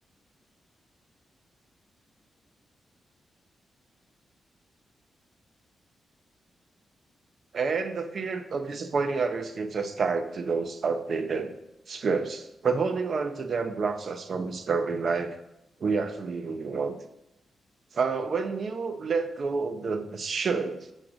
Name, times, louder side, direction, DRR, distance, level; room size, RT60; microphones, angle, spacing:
voice 1, 7.5-11.5 11.9-15.4 15.8-17.0 17.9-20.9, right 4 dB, 45° right, 7 dB, 0.7 m, -29 dB
7.5 x 6.3 x 3.9 m, 0.87 s
wide cardioid pair, 155°, 0 cm